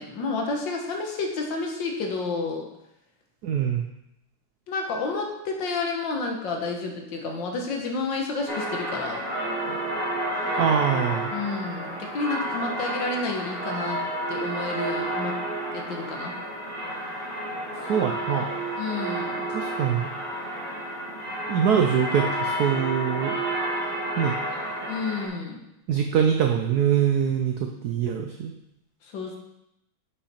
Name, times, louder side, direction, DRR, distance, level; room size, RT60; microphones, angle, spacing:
voice 1, 0.0-2.6 4.7-9.2 11.3-14.0 14.3-15.4 15.7-16.3 18.8-19.5 24.9-25.6 29.0-29.4, left 3 dB, 65° left, 2 dB, 1.7 m, -30 dB
voice 2, 3.4-3.8 10.5-11.3 17.9-18.5 19.5-20.1 21.5-23.3 24.2-24.3 25.9-27.5 27.8-28.5, right 8 dB, 80° right, 4 dB, 0.8 m, -23 dB
sound 1, 8.5-25.3, right 1 dB, 25° right, 2.2 m, -30 dB
6.7 x 5.6 x 4.3 m, 0.85 s
omnidirectional pair, 2.3 m